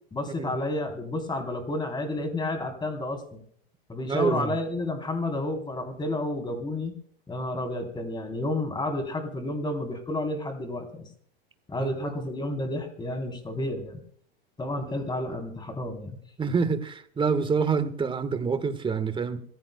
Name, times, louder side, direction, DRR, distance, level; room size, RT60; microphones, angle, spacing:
voice 1, 0.1-3.4 3.9-7.0 7.3-11.1 11.7-14.0 14.6-16.2, left 2 dB, 15° left, 5 dB, 3.5 m, -31 dB
voice 2, 4.1-4.5 11.8-12.1 16.4-19.4, right 5 dB, 15° right, 11 dB, 1.3 m, -27 dB
26.0 x 15.5 x 2.2 m, 0.62 s
hypercardioid pair, 100°, 31 cm